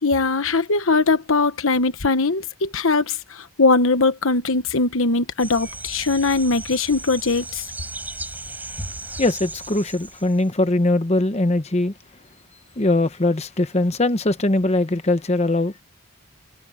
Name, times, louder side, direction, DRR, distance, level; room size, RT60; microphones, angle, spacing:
voice 1, 0.0-7.6, left 3 dB, 70° left, 1.2 m, -20 dB
sound 1, 5.4-10.5, right 2 dB, 10° right, 5.1 m, -35 dB
voice 2, 9.2-11.9 12.8-15.8, left 2 dB, 30° left, 1.0 m, -21 dB
head